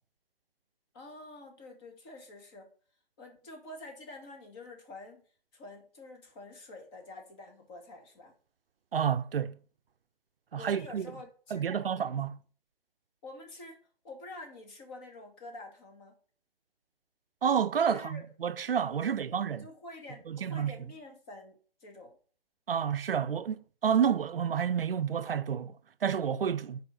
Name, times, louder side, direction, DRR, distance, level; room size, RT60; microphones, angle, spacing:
voice 1, 0.9-2.7 3.2-5.2 5.5-8.3 10.6-12.0 13.2-16.2 17.9-18.2 19.0-19.1 19.5-22.1, left 2 dB, 25° left, 1.9 m, -48 dB
voice 2, 8.9-9.6 10.5-11.1 11.5-12.4 17.4-19.7 20.3-20.8 22.7-26.8, right 8 dB, 70° right, 0.7 m, -30 dB
6.8 x 4.9 x 6.1 m
hypercardioid pair, 145°, 29 cm